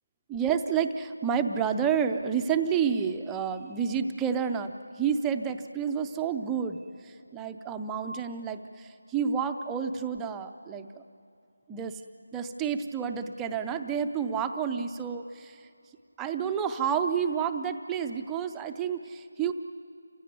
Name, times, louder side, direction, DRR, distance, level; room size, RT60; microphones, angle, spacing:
voice 1, 0.3-11.0 11.7-12.0 12.3-15.6 16.2-19.5, right 7 dB, 5° right, 6 dB, 0.5 m, -30 dB
28.5 x 16.0 x 9.3 m, 2.4 s
figure-of-eight pair, 175°, 0 cm